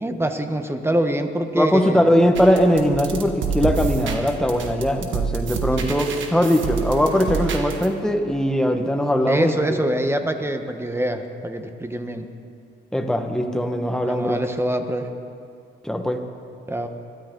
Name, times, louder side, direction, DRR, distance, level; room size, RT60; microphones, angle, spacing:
voice 1, 0.0-2.1 6.0-6.1 9.3-12.3 14.0-15.1 16.7-16.9, right 1 dB, 10° right, 6 dB, 1.1 m, -24 dB
voice 2, 1.5-9.8 12.9-14.4 15.8-16.2, equal, 5° left, 4 dB, 1.4 m, -20 dB
sound 1, 2.4-7.9, right 6 dB, 75° right, 1.5 m, -28 dB
21.5 x 13.0 x 3.9 m, 2.5 s
cardioid pair, 90°, 20 cm